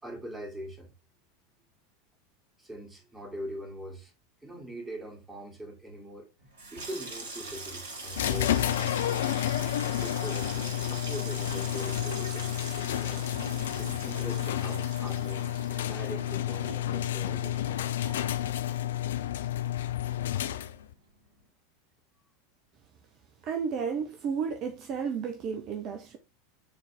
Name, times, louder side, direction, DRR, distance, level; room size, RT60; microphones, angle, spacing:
voice 1, 0.0-0.9 2.6-4.1 4.4-6.3 6.7-9.2 10.0-13.3 13.8-17.8, right 1 dB, 10° right, 2.7 m, -42 dB
Water tap faucet / Sink (filling or washing), 6.4-19.3 19.6-20.2 20.5-20.8, right 2 dB, 65° right, 2.0 m, -43 dB
sound 1, 8.1-20.9, left 12 dB, 65° left, 0.4 m, -30 dB
voice 2, 23.4-26.2, right 6 dB, 40° right, 0.8 m, -32 dB
7.0 x 4.0 x 3.4 m
figure-of-eight pair, 80°, 0 cm